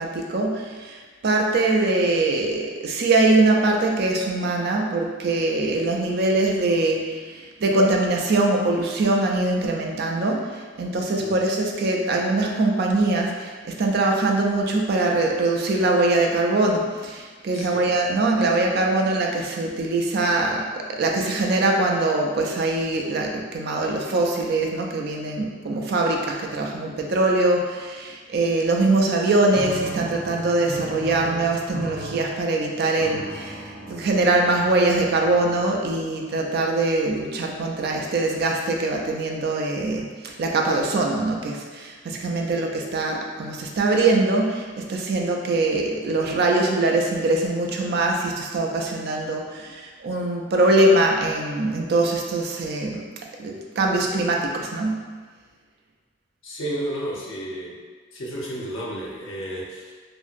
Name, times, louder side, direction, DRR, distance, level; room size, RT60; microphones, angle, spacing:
voice 1, 0.0-53.1 53.4-55.1, right 2 dB, 50° right, 0 dB, 0.3 m, -22 dB
voice 2, 11.2-11.5 17.5-17.9 56.4-57.7 58.1-59.9, right 1 dB, 70° left, -4 dB, 0.6 m, -32 dB
sound 1, 29.5-36.0, equal, 15° left, 0.6 m, -37 dB
2.8 x 2.5 x 2.4 m, 1.5 s
head